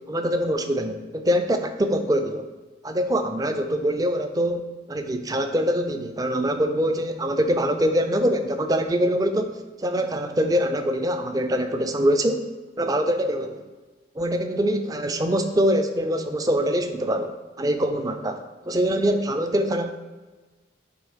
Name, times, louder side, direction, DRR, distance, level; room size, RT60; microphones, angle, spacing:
voice 1, 0.0-2.4 2.8-12.4 12.8-13.6 14.2-18.4 18.7-19.9, equal, 20° right, 7 dB, 0.3 m, -24 dB
7.5 x 2.7 x 5.0 m, 1.2 s
head